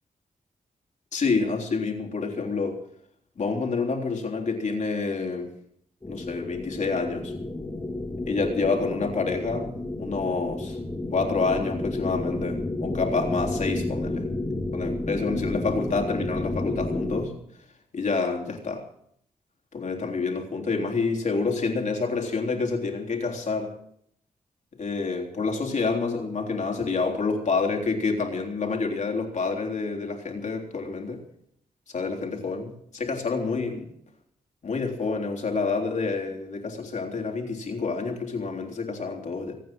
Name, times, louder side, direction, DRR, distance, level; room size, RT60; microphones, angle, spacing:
voice 1, 1.1-2.8 3.4-5.5 6.1-7.3 8.3-9.7 10.0-10.8 11.1-14.3 14.7-17.3 17.9-18.9 19.7-23.7 24.8-31.2 31.9-33.9 34.6-39.5, left 4 dB, 55° left, 1 dB, 3.5 m, -28 dB
sound 1, 6.0-17.3, left 2 dB, 20° left, 2.7 m, -31 dB
25.0 x 9.2 x 6.2 m, 0.69 s
wide cardioid pair, 115°, 14 cm